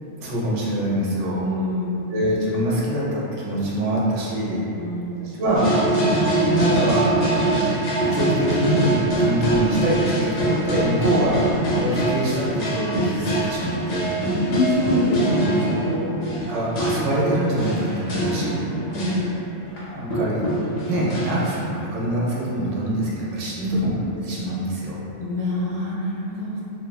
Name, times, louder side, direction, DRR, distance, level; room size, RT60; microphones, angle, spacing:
voice 1, 0.2-1.4 2.1-4.6 5.2-5.7 6.5-7.1 8.1-14.2 16.4-18.8 19.9-20.5 20.9-25.0, right 1 dB, 90° right, -6 dB, 0.9 m, -24 dB
voice 2, 1.3-2.1 4.7-5.2 14.1-16.2 18.9-19.4 23.6-23.8 25.2-26.6, left 1 dB, 60° right, -7 dB, 0.8 m, -25 dB
sound 1, 5.6-19.2 19.8-19.9 20.1-21.6, right 1 dB, 90° left, 1.0 m, -23 dB
2.9 x 2.2 x 2.2 m, 2.9 s
omnidirectional pair, 1.2 m